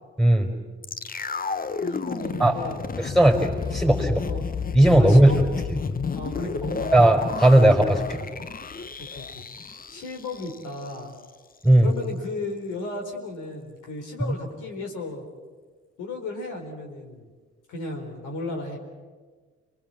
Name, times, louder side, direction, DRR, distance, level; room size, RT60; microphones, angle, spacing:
voice 1, 0.2-0.5 2.4-2.5 3.0-4.3 4.7-5.3 6.9-8.2 11.6-11.9, right 1 dB, ahead, 4 dB, 4.9 m, -17 dB
sound 1, 0.8-11.0 11.2-11.3, left 5 dB, 25° left, 1.1 m, -32 dB
voice 2, 1.8-2.9 4.2-4.5 5.0-5.4 6.1-6.9 9.0-11.2 11.8-15.3 16.0-17.3 17.7-18.8, left 2 dB, 60° left, 2 dB, 4.0 m, -34 dB
30.0 x 20.5 x 7.5 m, 1.4 s
figure-of-eight pair, 45°, 35 cm